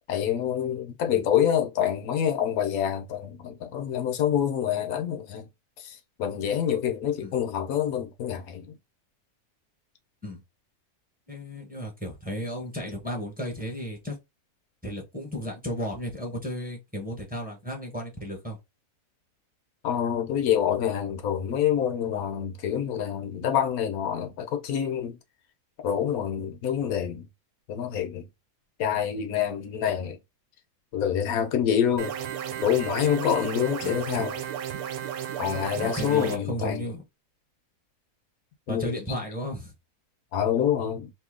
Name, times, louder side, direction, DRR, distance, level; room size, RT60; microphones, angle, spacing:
voice 1, 0.0-5.5 5.8-8.7 19.8-25.2 25.8-27.3 27.7-28.2 28.8-30.2 30.9-32.1 32.6-34.4 35.4-36.8 38.7-38.9 40.3-41.1, left 9 dB, 70° left, 1.1 m, -26 dB
voice 2, 11.3-14.1 14.8-18.6 33.8-34.0 35.8-37.0 38.7-39.7, equal, 5° right, 0.9 m, -34 dB
sound 1, 32.0-36.4, right 9 dB, 70° right, 1.1 m, -33 dB
2.9 x 2.7 x 3.7 m
omnidirectional pair, 1.7 m